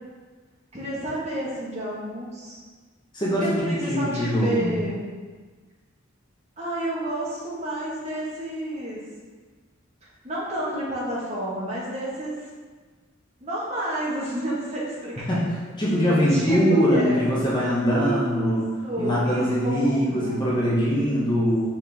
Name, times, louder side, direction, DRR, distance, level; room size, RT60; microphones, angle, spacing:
voice 1, 0.7-2.6 3.4-5.1 6.6-9.0 10.2-12.5 13.4-15.3 15.8-17.2 17.9-18.5 18.8-20.5 20.9-21.3, right 1 dB, 35° right, -7 dB, 1.7 m, -30 dB
voice 2, 3.1-4.8 15.3-15.5 15.8-18.6 19.0-21.7, equal, 25° left, -8 dB, 1.3 m, -22 dB
5.9 x 4.6 x 3.6 m, 1.4 s
head